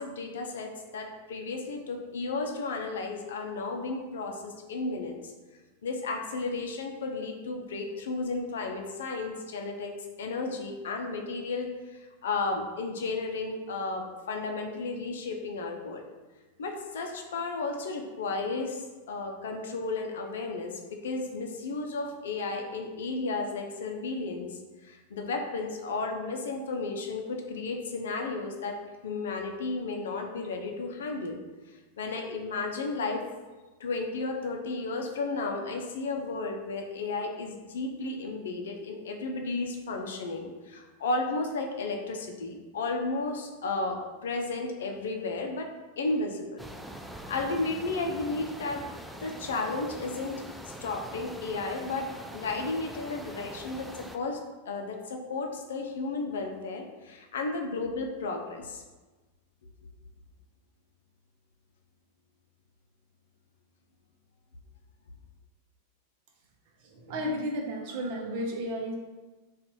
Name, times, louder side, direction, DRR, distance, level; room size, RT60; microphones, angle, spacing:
voice 1, 0.0-5.3 5.8-16.0 16.6-31.4 32.0-33.2 33.8-46.6 47.3-48.9 49.2-54.4 54.7-58.8, left 3 dB, 60° left, 3 dB, 0.5 m, -33 dB
sound 1, 46.6-54.2, right 1 dB, 5° right, 0.3 m, -43 dB
voice 2, 66.8-68.9, equal, 45° right, 1 dB, 0.7 m, -33 dB
3.9 x 2.4 x 4.4 m, 1.2 s
figure-of-eight pair, 90°, 0 cm